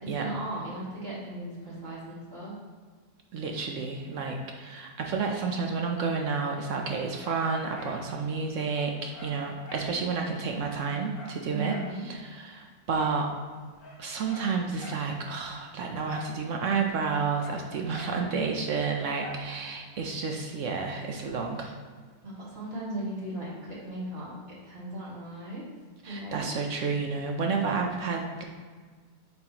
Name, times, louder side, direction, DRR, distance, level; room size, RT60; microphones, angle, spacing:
voice 1, 0.0-2.6 11.5-12.1 22.2-24.3 24.6-25.7 26.1-26.5, right 1 dB, 40° right, -6 dB, 1.9 m, -37 dB
voice 2, 3.3-11.7 12.0-13.3 14.0-21.8 26.0-28.4, right 4 dB, 65° right, 2 dB, 0.8 m, -30 dB
Dog, 6.7-8.0 8.3-8.4 8.7-9.9 10.3-10.4 10.6-11.9 12.9-13.2 13.7-15.1 16.0-16.4 16.6-18.2 19.2-19.5 20.0-20.1, left 1 dB, 40° left, 1.5 m, -45 dB
8.8 x 4.1 x 2.9 m, 1.5 s
omnidirectional pair, 1.8 m